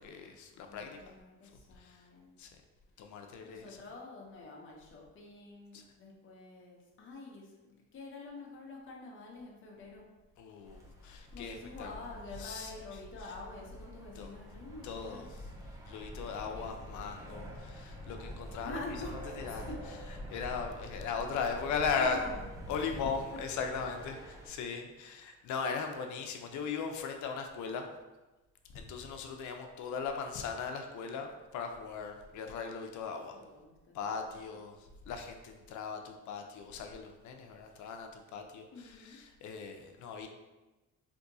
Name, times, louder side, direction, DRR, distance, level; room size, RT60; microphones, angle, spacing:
voice 1, 0.0-1.2 1.8-2.0 2.4-2.5 3.0-3.7 5.7-5.8 10.4-12.0 12.4-12.7 14.2-14.3 14.8-15.3 15.8-18.8 19.4-19.7 20.3-22.2 22.7-27.9 28.7-33.4 33.9-40.3, left 5 dB, 75° left, 5 dB, 0.5 m, -38 dB
voice 2, 0.6-2.4 3.4-10.0 11.3-15.3 16.5-17.4 18.6-19.8 21.3-21.5 21.9-22.4 22.7-23.4 33.3-34.2 34.5-34.6 38.7-39.2, left 3 dB, 40° left, -2 dB, 0.8 m, -47 dB
sound 1, 10.6-24.5, equal, 10° right, 0.6 m, -46 dB
3.5 x 2.7 x 2.6 m, 1.1 s
cardioid pair, 90°, 30 cm